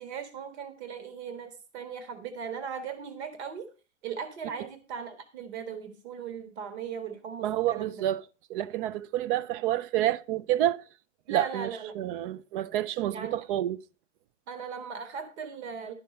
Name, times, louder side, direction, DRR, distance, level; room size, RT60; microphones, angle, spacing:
voice 1, 0.0-3.7 4.0-8.0 11.3-12.1 13.1-13.5 14.5-15.9, right 6 dB, 65° right, 1.7 m, -38 dB
voice 2, 7.4-8.2 8.5-10.8 11.3-11.7 12.0-13.8, right 13 dB, 50° right, 0.5 m, -28 dB
11.0 x 6.0 x 5.2 m
figure-of-eight pair, 85°, 36 cm